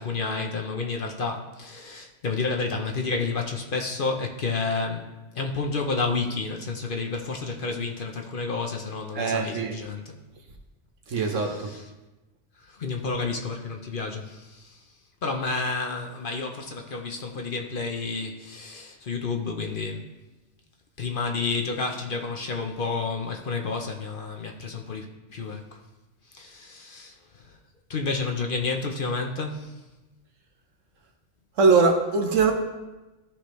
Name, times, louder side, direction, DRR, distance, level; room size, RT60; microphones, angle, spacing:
voice 1, 0.0-5.1 5.3-10.2 11.2-11.8 12.6-14.8 15.2-20.1 21.0-25.8 26.3-27.6 27.9-29.8, left 4 dB, 50° left, 3 dB, 0.8 m, -30 dB
voice 2, 9.1-9.7 11.1-11.7 31.6-32.5, right 4 dB, 80° right, 3 dB, 1.3 m, -21 dB
13.0 x 5.0 x 3.1 m, 1.1 s
omnidirectional pair, 1.3 m